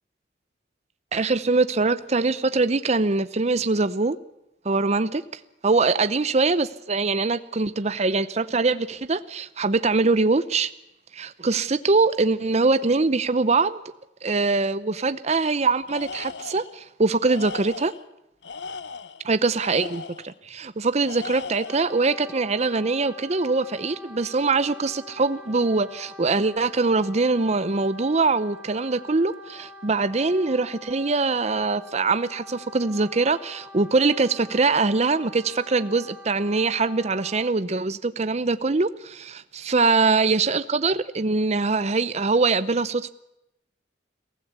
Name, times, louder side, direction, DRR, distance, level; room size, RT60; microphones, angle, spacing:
voice 1, 1.1-4.2 4.6-5.2 5.6-10.7 11.1-13.8 14.2-17.9 19.3-43.1, right 3 dB, 40° right, 13 dB, 0.7 m, -23 dB
Tools, 15.9-16.8 17.2-18.0 18.4-20.3 21.0-22.0, left 4 dB, 75° left, 0.9 m, -38 dB
Wind instrument woodwind instrument, 21.6-37.5, left 1 dB, 5° right, 4.9 m, -45 dB
23.0 x 15.5 x 8.1 m, 0.88 s
head